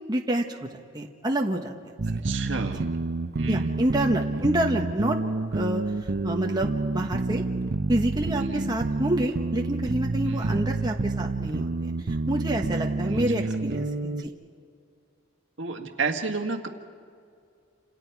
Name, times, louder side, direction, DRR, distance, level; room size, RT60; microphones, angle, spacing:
voice 1, 0.1-0.7 0.9-1.7 3.5-5.2 5.5-5.8 6.2-7.4 7.9-14.3, right 1 dB, 20° right, 1 dB, 1.2 m, -28 dB
sound 1, 2.0-14.2, right 3 dB, 50° right, 0.6 m, -29 dB
voice 2, 2.2-3.0 3.4-3.8 8.4-8.7 10.3-10.6 13.1-13.5 15.6-16.7, right 3 dB, 70° right, 4 dB, 1.7 m, -32 dB
29.5 x 28.0 x 4.7 m, 2.3 s
head